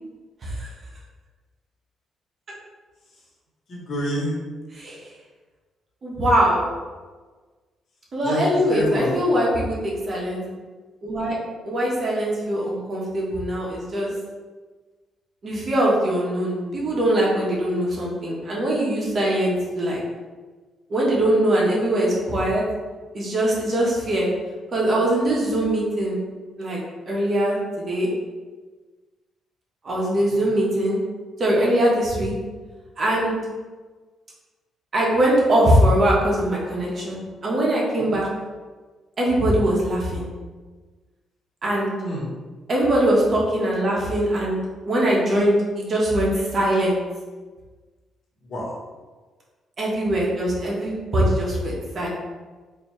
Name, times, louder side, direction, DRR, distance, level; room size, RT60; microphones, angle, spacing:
voice 1, 3.7-4.4 8.2-9.1 30.3-30.5 38.0-38.2 42.0-42.3 48.4-48.8, left 1 dB, 55° left, -4 dB, 1.3 m, -28 dB
voice 2, 6.0-6.6 8.1-10.4 11.0-11.4 11.6-14.1 15.4-20.0 20.9-22.6 23.1-24.3 24.7-26.2 26.6-26.8 27.1-28.1 29.8-31.0 31.4-32.3 33.0-33.4 34.9-38.3 39.2-40.3 41.6-41.9 42.7-44.6 44.8-47.0 49.8-52.1, right 1 dB, 45° right, -4 dB, 1.2 m, -22 dB
4.0 x 2.8 x 3.2 m, 1.4 s
cardioid pair, 90°, 0 cm